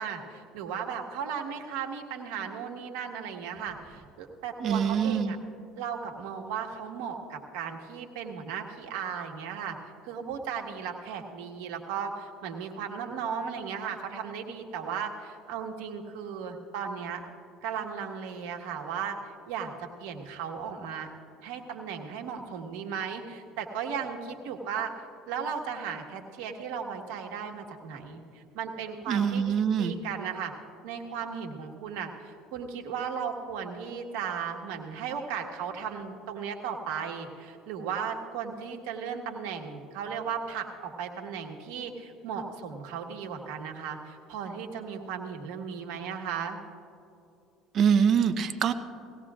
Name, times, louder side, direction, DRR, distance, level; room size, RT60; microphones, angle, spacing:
voice 1, 0.0-5.4 5.7-17.2 17.6-21.1 21.4-24.9 25.3-29.4 29.8-30.5 30.8-46.6, right 7 dB, 75° right, 4 dB, 1.5 m, -36 dB
voice 2, 4.6-5.3 29.1-29.9 47.7-48.7, right 7 dB, 50° right, 9 dB, 0.9 m, -24 dB
19.5 x 17.0 x 2.5 m, 2.6 s
hypercardioid pair, 70°, 0 cm